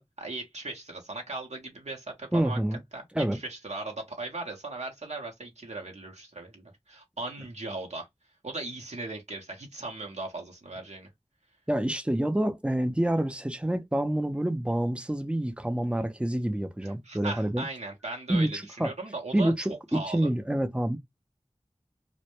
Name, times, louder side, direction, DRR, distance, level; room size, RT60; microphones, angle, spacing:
voice 1, 0.0-2.6 2.9-3.0 3.3-8.1 8.4-11.1 16.8-20.3, right 2 dB, 75° right, 0.7 m, -38 dB
voice 2, 2.3-2.8 3.1-3.4 11.7-17.7 18.3-18.9 19.3-21.0, right 1 dB, 10° right, 0.4 m, -27 dB
2.1 x 2.0 x 2.9 m
wide cardioid pair, 40°, 12 cm